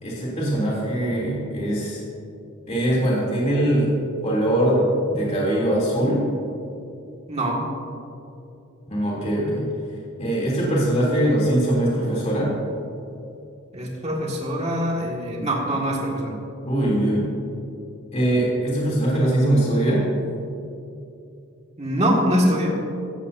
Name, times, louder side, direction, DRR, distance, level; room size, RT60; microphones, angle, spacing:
voice 1, 0.0-2.0 2.7-3.9 4.2-6.3 8.9-9.7 10.2-12.5 16.6-17.3 18.1-20.0, right 1 dB, 30° left, -5 dB, 3.1 m, -22 dB
voice 2, 7.3-7.6 13.7-16.3 21.8-22.8, equal, 30° right, -2 dB, 2.0 m, -23 dB
15.5 x 14.0 x 2.7 m, 2.7 s
head